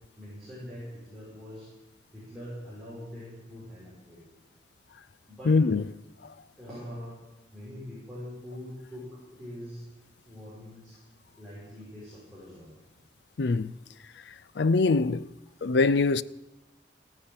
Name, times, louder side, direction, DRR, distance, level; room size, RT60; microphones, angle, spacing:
voice 1, 0.2-1.7 2.1-4.2 5.3-5.6 6.6-7.2 7.5-9.8 10.3-11.0 11.4-12.7, equal, ahead, 5.7 m, -43 dB
voice 2, 5.5-5.9 13.4-13.7 14.6-15.2 15.6-16.2, left 3 dB, 65° left, 0.4 m, -23 dB
15.5 x 9.8 x 8.8 m
head